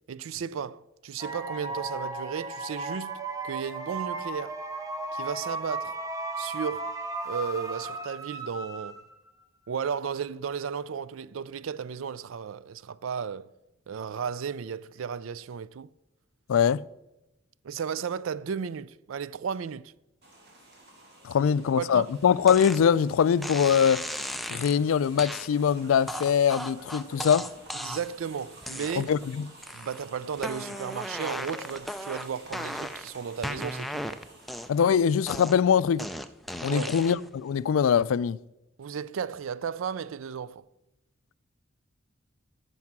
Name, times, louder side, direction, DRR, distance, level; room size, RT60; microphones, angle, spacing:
voice 1, 0.1-3.2 3.4-4.6 5.1-6.0 6.4-6.9 7.3-9.0 9.7-13.5 13.9-15.9 17.6-19.9 21.5-22.1 27.8-29.1 29.7-34.2 36.7-37.0 38.8-40.7, right 7 dB, 80° right, 0.4 m, -34 dB
sound 1, 1.2-9.3, right 3 dB, 15° right, 1.1 m, -35 dB
voice 2, 16.5-16.8 21.2-24.0 24.5-27.5 29.0-29.5 34.7-36.1 36.6-38.4, left 7 dB, 85° left, 0.3 m, -23 dB
sound 2, 20.2-35.4, right 2 dB, 55° right, 2.4 m, -50 dB
sound 3, 22.5-22.8 23.4-24.8 25.2-25.5 26.1-28.2 28.6-29.2 29.6-30.1 30.4-33.1 33.4-34.9 35.3-37.3, equal, ahead, 0.3 m, -36 dB
15.5 x 5.4 x 6.0 m
head